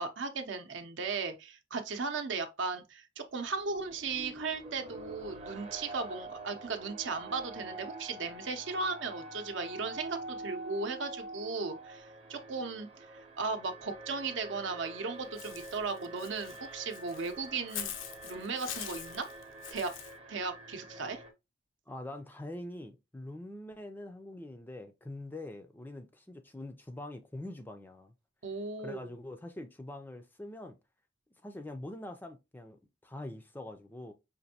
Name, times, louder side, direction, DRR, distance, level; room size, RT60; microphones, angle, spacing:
voice 1, 0.0-17.9 18.2-19.3 19.7-19.9 20.3-21.2 28.4-29.1, right 4 dB, 65° right, 0.7 m, -36 dB
Alarm, 3.4-21.3, right 2 dB, 30° right, 0.7 m, -46 dB
Walk footsteps / Bird, 15.4-20.1, left 10 dB, 75° left, 0.5 m, -43 dB
voice 2, 21.9-28.1 28.8-30.8 31.4-34.1, left 1 dB, 10° left, 0.4 m, -44 dB
5.1 x 2.6 x 2.7 m
head